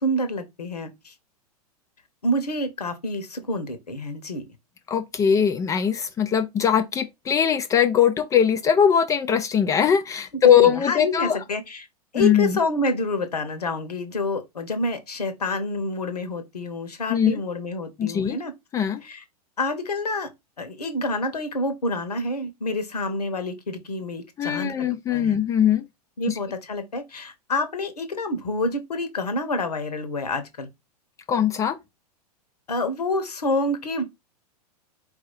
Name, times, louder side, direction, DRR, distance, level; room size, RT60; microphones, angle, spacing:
voice 1, 0.0-1.1 2.2-4.4 10.6-11.9 12.1-18.5 19.0-19.2 19.6-20.3 20.6-25.4 26.2-30.7 32.7-34.0, left 1 dB, 75° left, 1.2 m, -28 dB
voice 2, 4.9-11.4 12.1-12.6 17.1-17.4 18.0-18.4 18.7-19.0 24.4-25.9 26.3-26.4 31.3-31.8, left 8 dB, 15° left, 0.4 m, -21 dB
4.6 x 2.7 x 3.9 m
figure-of-eight pair, 100°, 20 cm